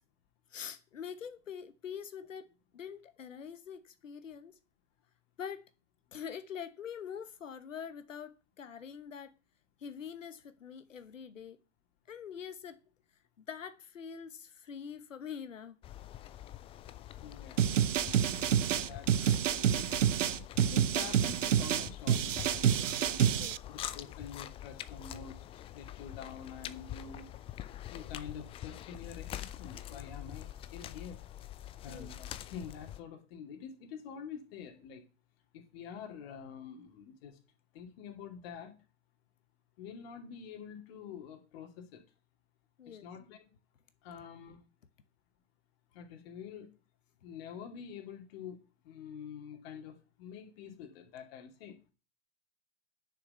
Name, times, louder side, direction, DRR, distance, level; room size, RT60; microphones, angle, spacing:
voice 1, 0.5-2.5 2.7-4.5 5.4-5.6 6.1-9.3 9.8-11.6 12.1-12.8 13.4-15.8 19.2-19.4 23.4-23.6 31.9-32.1 42.8-43.1, left 7 dB, 70° left, 1.1 m, -44 dB
sound 1, 15.8-33.0, left 12 dB, 15° left, 0.4 m, -45 dB
voice 2, 17.2-17.6 18.0-18.3 18.7-19.1 19.4-19.9 20.6-23.2 23.7-25.4 25.7-27.3 27.9-31.2 31.8-35.0 35.5-37.4 37.7-38.7 39.8-42.0 42.9-43.4 44.0-44.6 45.9-46.7 47.2-48.6 48.8-51.7, left 7 dB, 50° left, 2.6 m, -47 dB
sound 2, 17.6-23.6, right 9 dB, 70° right, 0.7 m, -28 dB
9.7 x 6.9 x 5.6 m
figure-of-eight pair, 95°, 39 cm